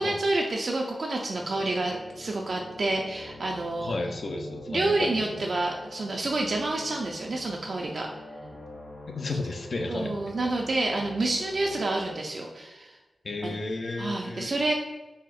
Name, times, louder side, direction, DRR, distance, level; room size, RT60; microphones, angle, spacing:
voice 1, 0.0-3.9 4.7-8.1 9.9-13.0 13.4-13.6 14.0-14.7, right 2 dB, 65° right, 0 dB, 0.3 m, -28 dB
sound 1, 1.3-12.1, left 1 dB, 50° left, 1.2 m, -45 dB
voice 2, 3.8-5.5 9.1-10.2 13.2-14.5, left 2 dB, 65° left, 3 dB, 0.4 m, -33 dB
4.1 x 2.0 x 2.4 m, 1.1 s
cardioid pair, 65°, 0 cm